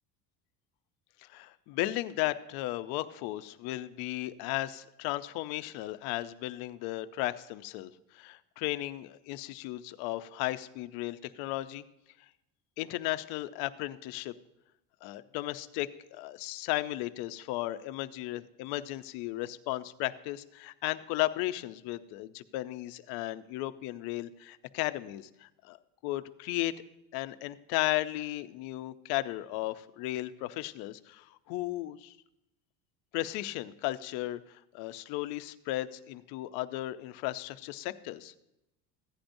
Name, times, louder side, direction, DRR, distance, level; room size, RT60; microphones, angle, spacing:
voice 1, 1.2-11.8 12.8-14.3 15.0-25.8 26.0-26.7 27.1-32.2 33.1-38.3, left 16 dB, 75° left, 12 dB, 0.6 m, -35 dB
15.5 x 10.0 x 2.6 m, 0.88 s
cardioid pair, 165°, 37 cm